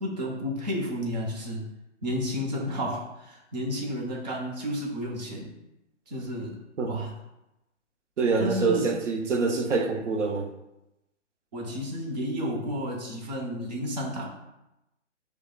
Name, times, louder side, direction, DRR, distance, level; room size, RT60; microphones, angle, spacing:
voice 1, 0.0-1.6 2.0-5.5 6.1-7.1 8.4-9.0 11.5-14.3, equal, 35° right, -1 dB, 0.8 m, -31 dB
voice 2, 8.2-10.5, right 4 dB, 75° right, 3 dB, 0.8 m, -26 dB
6.6 x 2.2 x 2.2 m, 0.91 s
hypercardioid pair, 150°, 36 cm